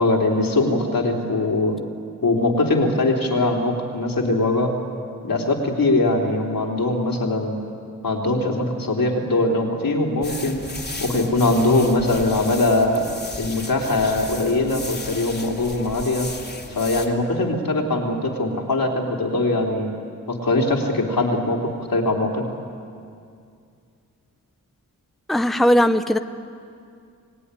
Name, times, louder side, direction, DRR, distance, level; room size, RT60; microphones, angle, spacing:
voice 1, 0.0-1.8 2.2-4.7 5.2-7.6 8.0-10.6 11.0-13.1 13.4-16.3 16.8-19.9 20.3-22.4, left 2 dB, 75° left, 0 dB, 3.5 m, -21 dB
sound 1, 10.2-17.1, left 2 dB, 30° left, 2.7 m, -35 dB
voice 2, 25.3-26.2, equal, ahead, 9 dB, 0.8 m, -18 dB
28.0 x 17.5 x 9.9 m, 2.4 s
wide cardioid pair, 80°, 34 cm